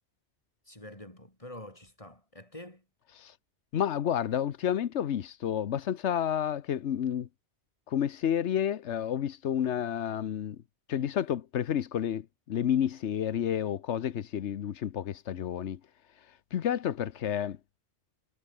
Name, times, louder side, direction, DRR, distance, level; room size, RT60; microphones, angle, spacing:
voice 1, 0.7-2.8, left 1 dB, 30° left, 6.1 m, -46 dB
voice 2, 3.7-7.3 7.9-10.6 10.9-15.8 16.5-17.6, left 9 dB, 90° left, 1.2 m, -30 dB
omnidirectional pair, 1.1 m